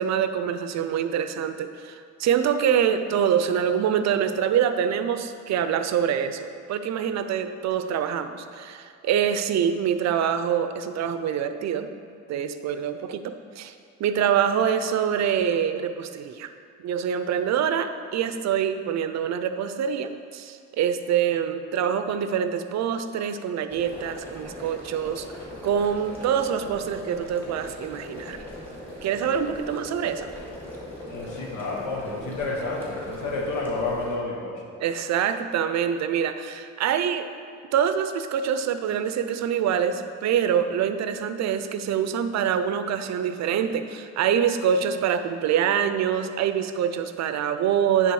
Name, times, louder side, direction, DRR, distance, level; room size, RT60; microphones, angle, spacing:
voice 1, 0.0-11.9 12.3-13.7 14.0-16.5 16.8-25.3 25.6-28.4 29.0-30.3 34.8-37.3 37.7-48.1, right 8 dB, 60° right, 10 dB, 0.5 m, -25 dB
sound 1, 23.7-34.2, left 1 dB, 5° left, 1.7 m, -39 dB
voice 2, 31.1-34.6, left 3 dB, 85° left, -1 dB, 1.3 m, -30 dB
9.5 x 3.6 x 4.7 m, 2.3 s
cardioid pair, 90°, 30 cm